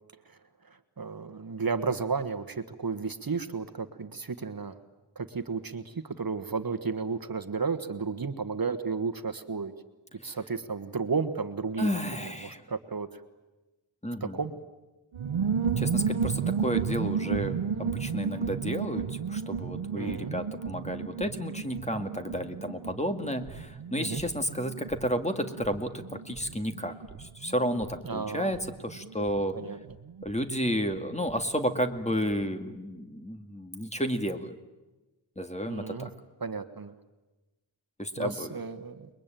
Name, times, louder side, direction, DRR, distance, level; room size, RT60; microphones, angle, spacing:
voice 1, 0.6-4.8 5.1-9.7 10.2-13.2 14.2-14.5 20.0-20.3 24.0-24.2 28.0-28.6 29.5-29.8 35.7-36.1 36.4-36.9 38.2-39.1, right 5 dB, 45° right, 10 dB, 1.4 m, -33 dB
voice 2, 11.8-12.6 14.0-14.4 15.8-28.6 28.8-29.6 30.2-34.5 35.4-36.1 38.0-38.5, equal, 15° left, 7 dB, 2.1 m, -32 dB
sound 1, 15.1-31.4 31.7-31.8 32.0-32.4, right 6 dB, 75° right, 1.0 m, -33 dB
29.5 x 22.0 x 9.1 m, 1.1 s
wide cardioid pair, 80°, 48 cm